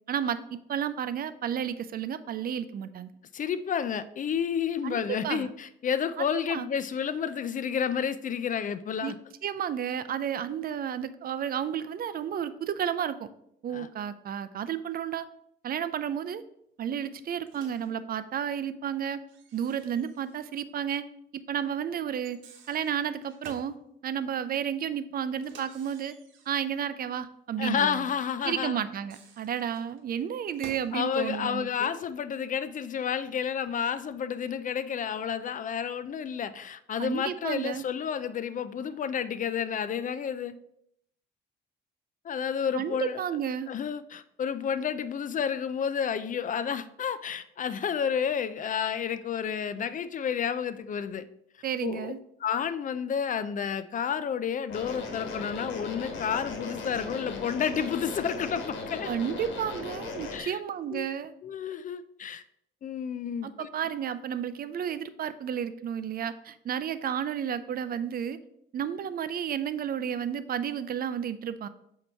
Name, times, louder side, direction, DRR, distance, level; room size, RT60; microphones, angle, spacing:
voice 1, 0.1-3.1 4.8-5.5 6.3-6.7 9.0-9.1 9.4-13.3 13.6-15.3 15.6-16.4 16.8-19.2 19.5-21.1 21.3-23.8 24.0-26.2 26.5-28.1 28.4-31.9 37.0-37.8 42.7-43.7 51.6-52.2 59.1-61.3 63.4-68.4 68.7-71.7, right 8 dB, 50° right, 0.4 m, -32 dB
voice 2, 3.3-9.2 13.7-13.9 27.6-28.8 30.9-40.6 42.2-43.2 43.7-51.3 51.8-52.1 52.4-59.1 60.3-60.6 60.9-61.1 61.4-62.4 62.8-63.7, left 7 dB, 45° left, 0.4 m, -30 dB
Microwave oven, 17.5-17.9 19.3-20.7 20.9-21.0 22.1-23.8 25.4-26.8 28.8-31.0, right 5 dB, 85° right, 0.9 m, -52 dB
sound 1, 54.7-60.4, left 3 dB, 80° left, 1.2 m, -38 dB
7.7 x 2.9 x 4.4 m
cardioid pair, 85°, 19 cm